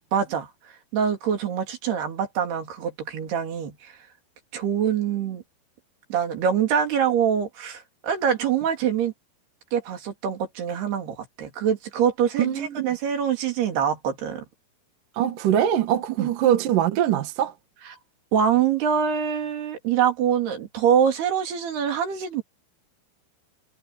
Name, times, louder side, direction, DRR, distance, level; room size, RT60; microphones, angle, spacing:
voice 1, 0.1-0.5 0.9-3.9 4.5-5.4 6.1-9.1 9.7-14.4 16.2-16.3 17.8-18.0 18.3-22.4, right 8 dB, 85° right, 5.2 m, -24 dB
voice 2, 12.4-12.8 15.2-17.5, right 10 dB, 65° right, 2.9 m, -22 dB
omnidirectional pair, 4.5 m